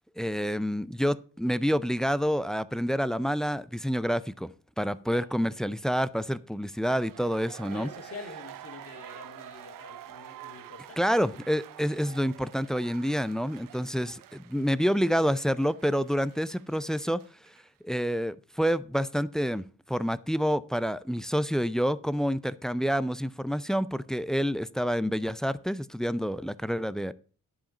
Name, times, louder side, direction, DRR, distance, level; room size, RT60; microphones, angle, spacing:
voice 1, 0.2-7.9 11.0-17.2 17.8-27.1, equal, ahead, 0.3 m, -28 dB
sound 1, 6.8-17.6 17.9-18.0, right 12 dB, 65° right, 0.6 m, -48 dB
voice 2, 7.6-11.4 13.8-14.1, left 4 dB, 40° left, 1.9 m, -46 dB
10.5 x 5.0 x 6.0 m
cardioid pair, 95°, 35 cm